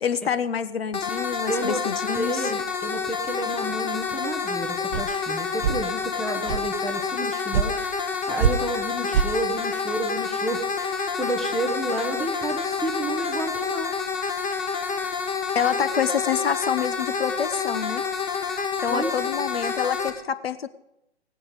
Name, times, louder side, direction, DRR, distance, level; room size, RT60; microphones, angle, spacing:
voice 1, 0.0-2.5 15.5-18.0 18.8-20.7, left 7 dB, 65° left, 14 dB, 1.1 m, -27 dB
sound 1, 0.9-20.1, left 5 dB, 25° left, 1.7 m, -28 dB
voice 2, 1.5-1.8 2.2-13.9 18.9-19.2, right 1 dB, ahead, -1 dB, 0.7 m, -31 dB
sound 2, 4.9-5.0 5.6-5.8 6.5-6.7 7.5-7.7 8.4-8.5 9.1-9.3, right 8 dB, 50° right, 0.8 m, -22 dB
16.0 x 9.8 x 5.0 m, 0.83 s
figure-of-eight pair, 130°, 32 cm